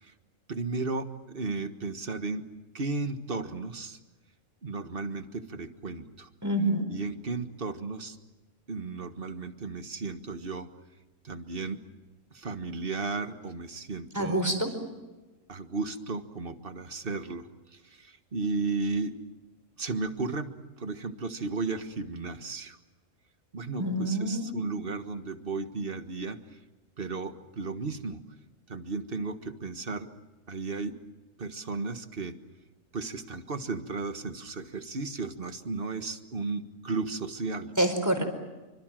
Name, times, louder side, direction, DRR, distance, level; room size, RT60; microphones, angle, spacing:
voice 1, 0.5-2.5 2.7-4.0 4.6-6.3 6.9-8.2 8.7-10.7 11.2-11.8 12.3-14.4 15.5-19.1 19.8-22.8 23.5-26.4 27.0-28.2 28.7-30.1 30.5-31.0 31.4-32.3 32.9-37.7, right 3 dB, 40° right, 8 dB, 1.7 m, -34 dB
voice 2, 6.4-6.9 14.1-14.7 23.8-24.5 37.8-38.2, right 1 dB, 10° right, 6 dB, 4.8 m, -26 dB
27.5 x 25.5 x 7.7 m, 1.2 s
omnidirectional pair, 1.5 m